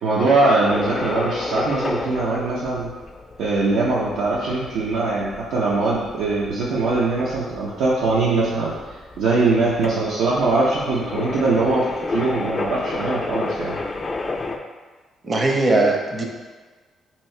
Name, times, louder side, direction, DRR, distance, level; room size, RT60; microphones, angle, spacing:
voice 1, 0.0-2.9 3.4-11.9 12.1-13.8, right 3 dB, 85° right, -6 dB, 0.6 m, -21 dB
sound 1, 0.7-14.6, left 3 dB, 35° left, 0.3 m, -31 dB
voice 2, 15.2-16.3, right 2 dB, 35° right, 1 dB, 0.6 m, -19 dB
2.9 x 2.7 x 4.3 m, 1.4 s
cardioid pair, 90°, 0 cm